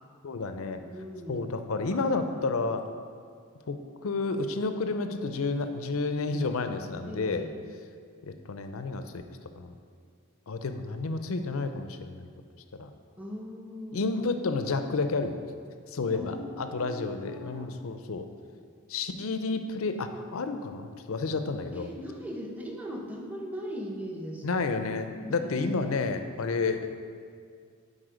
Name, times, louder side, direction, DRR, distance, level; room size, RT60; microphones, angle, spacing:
voice 1, 0.2-0.8 1.3-2.8 3.7-3.8 4.0-7.5 8.2-9.2 9.6-9.7 10.5-12.3 12.8-12.9 13.9-15.4 15.9-18.2 18.9-21.9 24.4-26.8, left 3 dB, 80° left, 8 dB, 0.5 m, -30 dB
voice 2, 0.8-1.5 1.9-2.4 7.0-7.5 13.2-14.0 16.1-17.7 21.7-24.5 24.7-24.9 25.2-25.9, equal, 5° right, 0 dB, 0.7 m, -40 dB
9.0 x 4.2 x 5.1 m, 2.1 s
head